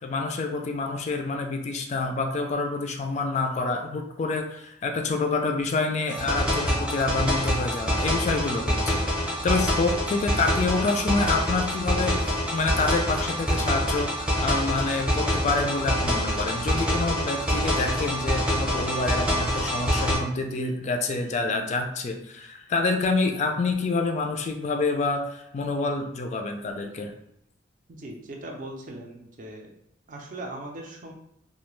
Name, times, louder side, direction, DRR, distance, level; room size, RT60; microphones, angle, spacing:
voice 1, 0.0-27.1, left 3 dB, 40° left, 4 dB, 0.3 m, -27 dB
sound 1, 6.1-20.2, equal, 5° right, 0.6 m, -26 dB
voice 2, 27.9-29.7 30.1-31.1, right 1 dB, 45° right, 1 dB, 0.5 m, -39 dB
2.3 x 2.1 x 3.0 m, 0.75 s
head